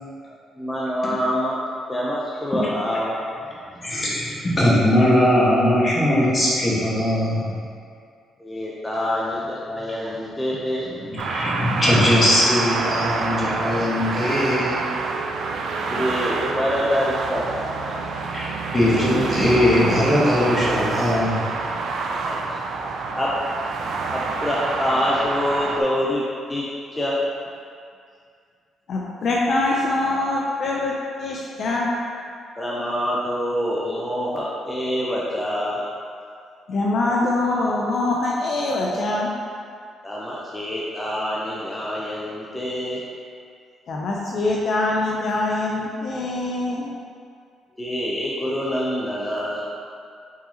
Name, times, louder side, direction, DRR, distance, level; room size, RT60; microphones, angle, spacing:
voice 1, 0.6-1.6 1.9-3.2 7.0-7.1 8.4-10.9 11.3-11.4 12.9-13.1 15.9-18.0 22.3-22.5 23.2-23.3 24.1-26.2 26.5-27.2 32.6-35.8 40.0-43.0 47.8-49.7, equal, 10° left, -6 dB, 0.6 m, -26 dB
voice 2, 3.8-7.5 10.8-14.9 18.2-21.4, left 1 dB, 30° left, -7 dB, 1.3 m, -20 dB
sound 1, 11.2-25.8, right 4 dB, 65° right, 0.4 m, -27 dB
voice 3, 28.9-31.9 36.7-39.3 43.9-46.9, left 2 dB, 60° left, -3 dB, 0.5 m, -23 dB
4.8 x 3.9 x 2.8 m, 2.2 s
cardioid pair, 90°, 0 cm